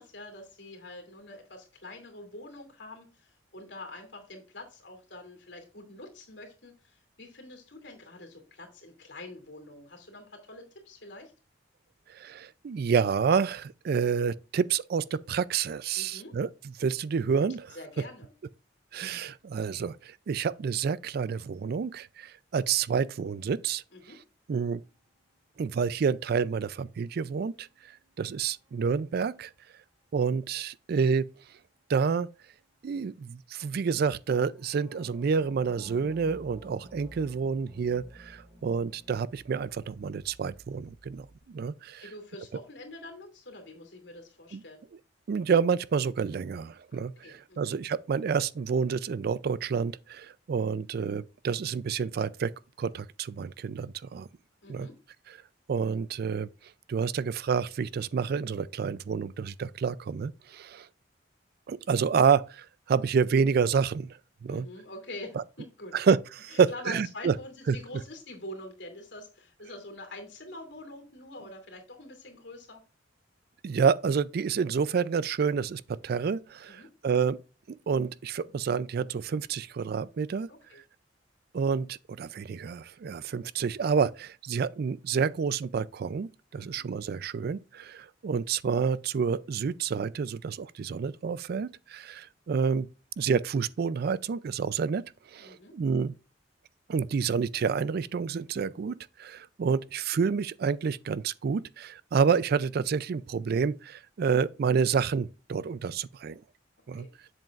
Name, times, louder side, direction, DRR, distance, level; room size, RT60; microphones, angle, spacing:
voice 1, 0.0-11.3 15.9-16.3 17.7-18.3 23.9-24.2 42.0-44.8 47.2-47.7 54.6-55.0 64.5-65.9 66.5-72.8 76.7-76.9 80.5-80.8 86.5-86.8 95.4-95.7 106.9-107.1, left 2 dB, 70° left, 2.6 m, -45 dB
voice 2, 12.1-16.5 16.8-17.7 18.9-23.8 24.5-24.8 25.6-27.9 28.2-29.5 30.1-31.2 31.9-32.3 32.8-42.1 44.5-44.6 45.3-52.5 52.8-54.3 54.7-54.9 55.7-56.5 56.9-60.9 61.7-64.7 65.3-65.4 65.9-67.3 67.7-67.8 73.6-77.4 77.7-80.5 81.5-92.9 93.2-95.0 95.3-96.1 96.9-106.4 106.9-107.1, right 6 dB, 55° right, 0.3 m, -29 dB
sound 1, 28.0-29.3 34.4-41.4, right 1 dB, 35° right, 3.1 m, -53 dB
7.8 x 7.4 x 2.4 m
head